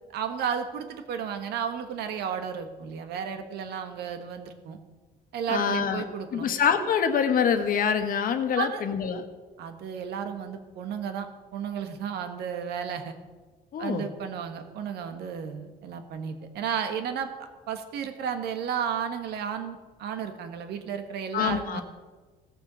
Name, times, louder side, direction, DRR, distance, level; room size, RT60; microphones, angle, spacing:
voice 1, 0.1-4.8 5.3-6.5 8.6-8.8 9.6-11.3 11.5-13.1 13.8-21.8, right 7 dB, 75° right, 7 dB, 1.5 m, -33 dB
voice 2, 5.5-9.2 13.7-14.0 21.3-21.8, left 7 dB, 55° left, 7 dB, 1.4 m, -25 dB
17.0 x 7.1 x 6.2 m, 1.3 s
cardioid pair, 110°, 17 cm